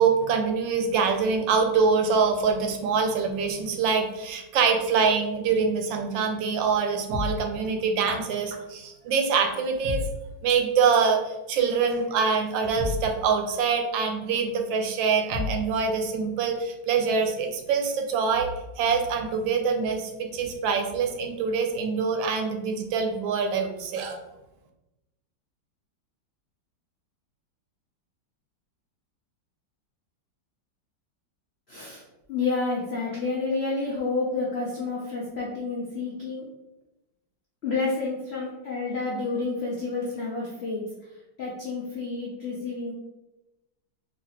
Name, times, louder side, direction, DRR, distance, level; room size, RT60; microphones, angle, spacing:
voice 1, 0.0-10.0 10.4-11.2 11.5-18.5 18.8-24.2, right 5 dB, 85° right, 5 dB, 1.3 m, -24 dB
sound 1, 7.1-7.5 9.8-10.2 12.8-13.1 15.3-15.7, left 4 dB, 35° right, 1.1 m, -30 dB
voice 2, 31.7-32.0 32.3-36.5 37.6-40.8 41.4-42.9, left 3 dB, 85° left, -4 dB, 0.5 m, -29 dB
4.0 x 2.8 x 2.8 m, 0.98 s
omnidirectional pair, 2.0 m